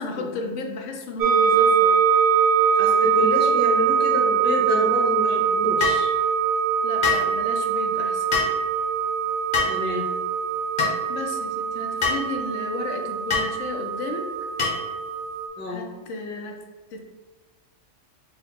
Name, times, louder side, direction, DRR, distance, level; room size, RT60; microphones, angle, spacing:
voice 1, 0.0-1.9 6.8-8.3 11.1-14.3 15.7-16.6 16.9-17.0, left 2 dB, 80° left, 3 dB, 0.9 m, -33 dB
sound 1, 1.2-15.5, right 7 dB, 60° right, 0.7 m, -23 dB
voice 2, 2.7-6.1 9.7-10.0 15.6-15.9, left 1 dB, 10° left, -4 dB, 0.7 m, -28 dB
sound 2, 5.8-6.0 7.0-7.3 8.3-8.6 9.5-9.8 10.8-11.0 12.0-12.2 13.3-13.5 14.6-14.9, left 4 dB, 50° left, 0.9 m, -24 dB
4.2 x 2.1 x 4.0 m, 1.2 s
omnidirectional pair, 1.3 m